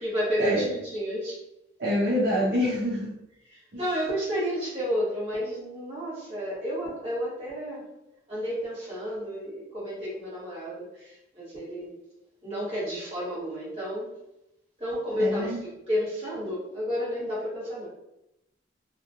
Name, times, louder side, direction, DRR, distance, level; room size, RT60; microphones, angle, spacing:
voice 1, 0.0-1.3 3.8-7.8 8.3-11.9 12.4-14.1 14.8-17.9, equal, 35° right, -8 dB, 1.3 m, -31 dB
voice 2, 1.8-3.1 3.7-3.8 15.2-15.6, equal, 60° right, -6 dB, 0.6 m, -26 dB
3.0 x 2.5 x 2.5 m, 0.87 s
head